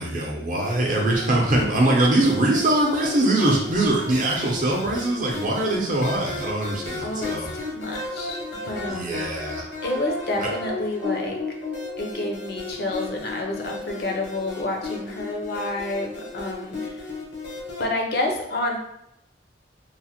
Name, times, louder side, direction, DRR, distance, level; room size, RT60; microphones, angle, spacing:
voice 1, 0.0-7.5 8.9-9.7 10.4-10.5, right 1 dB, 45° right, -1 dB, 0.6 m, -22 dB
sound 1, 0.6-17.8, left 3 dB, 75° left, 0.9 m, -34 dB
voice 2, 7.0-8.4 8.7-9.5 9.8-11.4 12.0-17.0 17.8-18.8, left 2 dB, 55° left, 1 dB, 0.5 m, -29 dB
3.1 x 2.1 x 2.9 m, 0.78 s
head